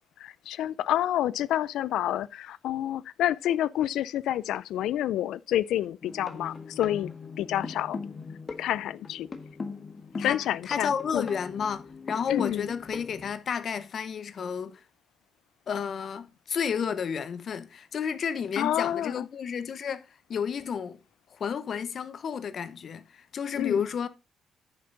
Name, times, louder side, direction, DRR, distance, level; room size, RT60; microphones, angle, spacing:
voice 1, 0.2-7.1 7.4-8.0 8.6-9.3 10.2-11.3 12.3-12.7 18.6-19.3 23.5-23.9, left 12 dB, 85° left, 0.4 m, -28 dB
sound 1, 6.0-13.3, left 4 dB, 40° left, 1.5 m, -40 dB
voice 2, 10.2-14.8 15.7-21.0 21.3-24.1, left 7 dB, 55° left, 0.9 m, -32 dB
9.5 x 6.8 x 3.9 m
cardioid pair, 90°, 0 cm